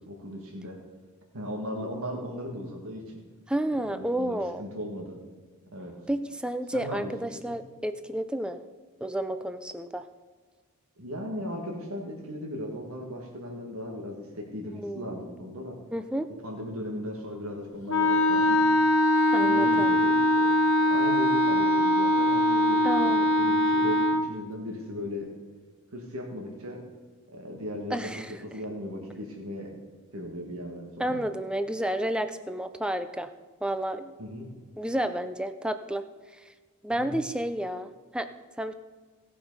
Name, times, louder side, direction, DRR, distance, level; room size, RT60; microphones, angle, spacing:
voice 1, 0.1-0.8 1.3-3.1 3.7-5.2 5.7-5.9 6.7-7.1 7.5-7.6 11.0-15.8 16.4-18.8 19.4-20.5 20.8-25.3 25.9-26.8 27.3-28.1 28.4-29.7 30.1-31.2 34.2-34.5 36.9-37.1, equal, 70° right, 0 dB, 1.7 m, -37 dB
voice 2, 3.5-4.6 6.1-8.6 9.0-10.1 14.8-15.2 15.9-16.3 19.3-19.9 22.8-23.3 27.9-28.3 31.0-33.3 33.6-34.1 34.8-36.0 36.4-36.5 36.8-38.3 38.6-38.7, right 1 dB, 5° right, 10 dB, 0.4 m, -31 dB
Wind instrument woodwind instrument, 17.9-24.3, left 1 dB, 60° left, 1.0 m, -22 dB
17.0 x 6.0 x 5.4 m, 1.4 s
head